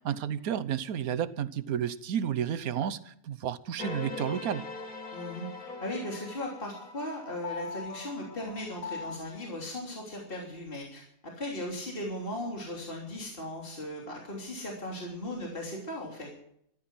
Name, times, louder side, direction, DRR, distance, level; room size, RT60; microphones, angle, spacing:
voice 1, 0.0-4.6, right 9 dB, 90° right, 1.3 m, -31 dB
sound 1, 3.8-9.2, left 4 dB, 85° left, 3.0 m, -41 dB
voice 2, 5.1-5.5 5.8-11.0 11.4-16.3, left 1 dB, 40° left, 3.4 m, -37 dB
14.0 x 14.0 x 6.0 m
omnidirectional pair, 1.5 m